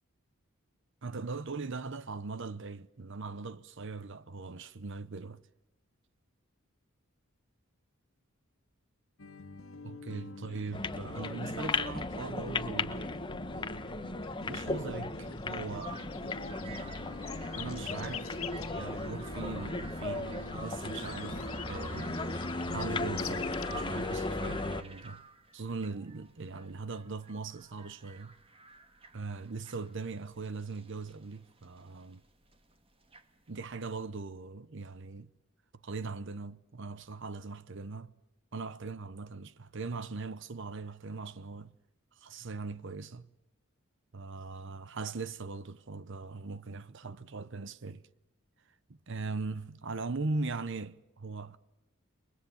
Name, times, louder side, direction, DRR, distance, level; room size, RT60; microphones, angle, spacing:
voice 1, 1.0-5.4 9.8-13.1 14.5-16.0 17.5-18.3 18.7-22.2 22.7-25.2 25.5-28.3 29.1-32.2 33.5-35.3 35.8-38.2 38.5-41.7 42.1-43.3 44.1-48.0 49.1-51.6, right 3 dB, 60° right, 0.9 m, -40 dB
sound 1, 9.2-23.7, left 3 dB, 85° left, 1.8 m, -45 dB
sound 2, 10.7-24.8, left 2 dB, 25° left, 1.1 m, -36 dB
sound 3, 15.7-34.0, right 4 dB, 25° right, 2.0 m, -52 dB
29.0 x 23.5 x 7.1 m
head